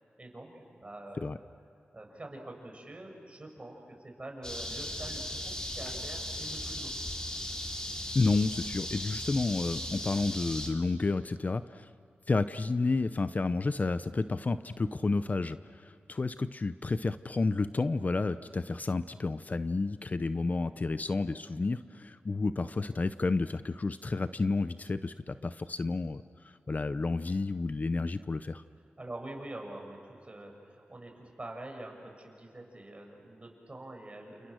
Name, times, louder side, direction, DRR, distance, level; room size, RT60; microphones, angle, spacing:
voice 1, 0.2-1.3 1.9-6.9 29.0-34.5, right 1 dB, 30° right, 2 dB, 6.4 m, -45 dB
sound 1, 4.4-10.7, left 1 dB, 20° left, 3.7 m, -37 dB
voice 2, 8.1-11.9 12.3-26.2 26.7-28.6, left 3 dB, 45° left, 12 dB, 0.7 m, -31 dB
29.0 x 28.5 x 6.4 m, 2.6 s
cardioid pair, 60°, 4 cm